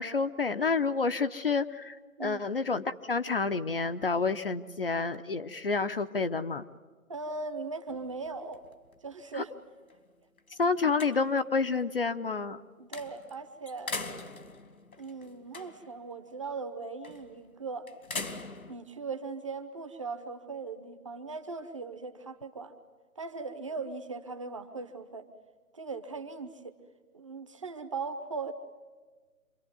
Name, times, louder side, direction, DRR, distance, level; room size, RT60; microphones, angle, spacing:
voice 1, 0.0-6.6 9.3-9.4 10.5-12.6, left 4 dB, 40° left, 9 dB, 0.7 m, -29 dB
voice 2, 7.1-8.6 9.0-9.5 10.8-10.9 12.8-13.9 15.0-17.9 18.7-22.7 23.2-25.3 25.7-26.7 27.1-28.5, right 4 dB, 25° right, 8 dB, 0.9 m, -39 dB
sound 1, 7.9-9.4 9.9-10.0 10.4-11.6 12.9-13.3 13.7-16.0 17.0-17.4 17.9-18.8, left 3 dB, 85° left, 2.7 m, -41 dB
27.5 x 22.5 x 9.4 m, 1.4 s
figure-of-eight pair, 160°, 42 cm